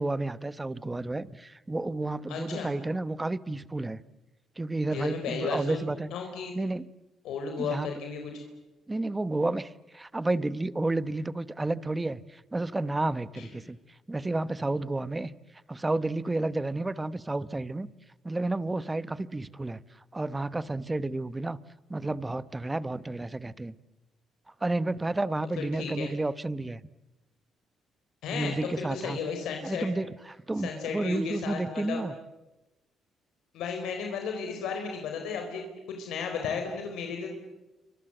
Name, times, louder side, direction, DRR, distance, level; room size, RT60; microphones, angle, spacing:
voice 1, 0.0-4.0 4.6-6.1 6.5-6.8 7.6-7.9 8.9-13.8 14.1-15.3 15.7-17.9 18.2-19.8 20.1-21.6 21.9-23.7 24.6-26.8 28.3-29.2 29.6-32.1, right 2 dB, 15° right, 1.0 m, -31 dB
voice 2, 2.3-2.7 4.9-5.8 6.1-6.5 7.2-8.4 13.4-13.5 25.7-26.1 28.2-28.5 28.9-29.9 30.6-32.0 33.5-37.3, left 5 dB, 85° left, 4.1 m, -34 dB
28.5 x 25.5 x 7.9 m
cardioid pair, 90°, 0 cm